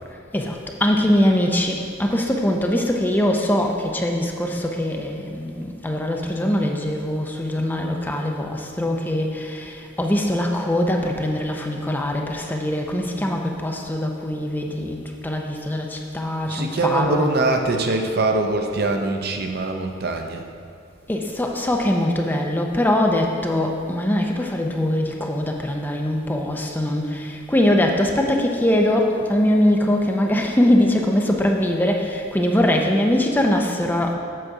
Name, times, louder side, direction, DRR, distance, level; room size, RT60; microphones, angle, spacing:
voice 1, 0.3-17.3 18.0-18.1 21.1-34.1, left 1 dB, 10° left, 1 dB, 0.5 m, -22 dB
voice 2, 16.4-20.5, right 2 dB, 55° right, 4 dB, 0.6 m, -23 dB
7.7 x 6.4 x 4.8 m, 2.3 s
head